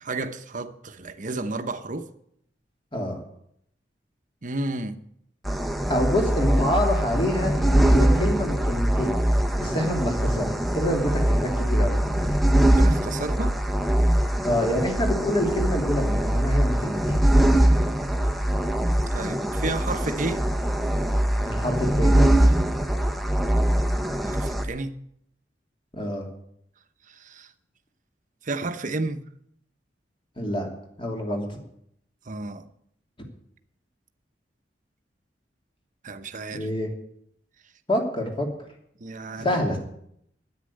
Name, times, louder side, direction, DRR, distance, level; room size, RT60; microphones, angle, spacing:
voice 1, 0.0-2.1 4.4-5.0 12.7-13.6 19.1-20.4 24.3-25.0 27.1-27.5 28.4-29.2 32.3-32.6 36.0-36.7 39.0-39.6, right 2 dB, 45° right, 0.9 m, -32 dB
sound 1, 5.5-24.6, right 1 dB, ahead, 0.9 m, -22 dB
voice 2, 5.9-9.2 9.5-12.3 14.4-17.2 21.4-22.2 25.9-26.3 30.4-30.7 31.0-31.6 36.5-36.9 37.9-38.5 39.4-39.8, left 1 dB, 30° left, 2.8 m, -26 dB
10.0 x 8.9 x 9.8 m
head